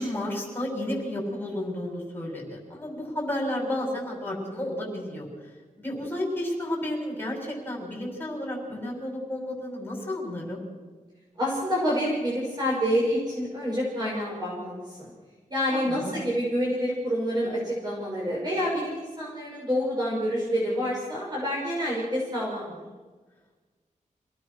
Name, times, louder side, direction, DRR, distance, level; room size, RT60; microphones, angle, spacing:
voice 1, 0.0-10.6 15.7-16.2, left 1 dB, 15° left, -2 dB, 6.7 m, -32 dB
voice 2, 11.4-15.1 15.5-22.8, equal, 30° right, -5 dB, 6.6 m, -28 dB
27.5 x 18.5 x 6.5 m, 1.3 s
wide cardioid pair, 180°, 14 cm